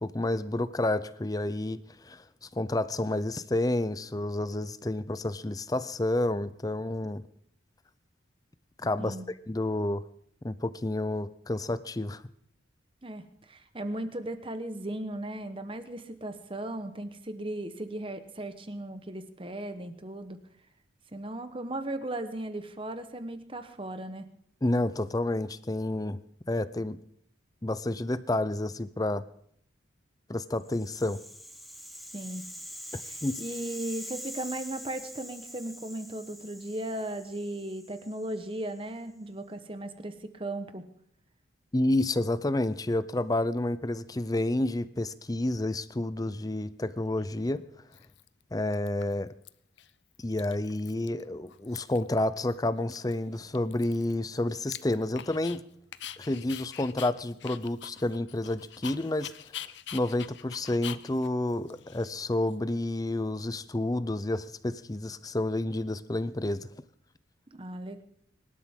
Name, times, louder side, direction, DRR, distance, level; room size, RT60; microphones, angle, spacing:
voice 1, 0.0-2.2 2.5-7.2 8.8-9.2 9.5-10.0 10.4-12.2 24.6-26.2 26.5-27.0 27.6-29.2 30.3-31.2 32.9-33.4 41.7-47.6 48.5-49.3 50.2-55.6 56.2-59.3 59.9-66.7, left 1 dB, 20° left, 15 dB, 0.5 m, -30 dB
voice 2, 13.0-20.4 21.1-24.3 32.1-32.4 33.0-40.9 67.5-68.0, right 1 dB, 25° right, 9 dB, 1.1 m, -37 dB
Rattle (instrument), 30.6-38.8, equal, ahead, 1.1 m, -44 dB
Dog, 47.2-47.3 47.9-48.4 48.7-49.5 49.8-49.9 50.1-51.2 51.5-52.1 52.5-52.6 52.9-55.6 55.9-62.5, left 11 dB, 65° left, 0.6 m, -44 dB
24.0 x 12.5 x 3.7 m, 0.69 s
head